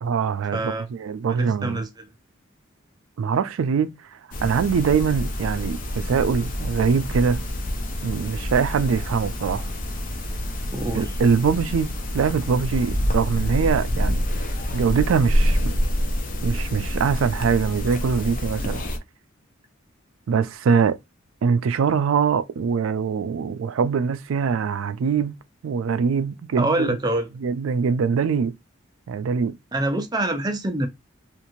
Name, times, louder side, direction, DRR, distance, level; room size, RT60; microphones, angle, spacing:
voice 1, 0.0-1.8 3.2-4.0 4.4-7.4 8.0-9.7 10.9-14.3 14.7-15.7 16.4-18.8 20.3-21.0 21.4-25.4 25.6-27.0 27.4-28.5 29.1-29.5, right 6 dB, 85° right, 0.4 m, -23 dB
voice 2, 0.5-0.9 1.3-2.1 10.7-11.1 26.6-27.3 29.7-30.9, right 2 dB, 20° right, 0.5 m, -25 dB
sound 1, 4.3-19.0, equal, 40° left, 0.5 m, -27 dB
2.9 x 2.5 x 2.6 m
head